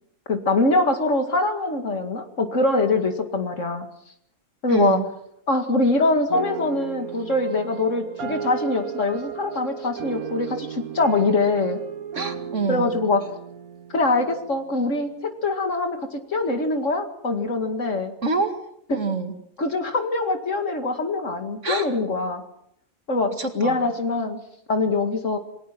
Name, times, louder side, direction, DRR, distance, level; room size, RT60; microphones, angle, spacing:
voice 1, 0.3-3.9 4.6-5.0 5.5-11.8 12.7-13.2 13.9-18.1 18.9-19.0 19.6-22.4 23.1-24.4 24.7-25.4, left 2 dB, 60° left, 6 dB, 2.5 m, -23 dB
voice 2, 4.7-5.1 12.1-12.9 18.2-18.5 18.9-19.3 21.6-21.9 23.4-23.8, right 4 dB, 55° right, 6 dB, 2.4 m, -26 dB
sound 1, 6.3-14.8, right 7 dB, 85° right, 1.6 m, -34 dB
28.0 x 20.0 x 6.1 m, 0.72 s
omnidirectional pair, 1.5 m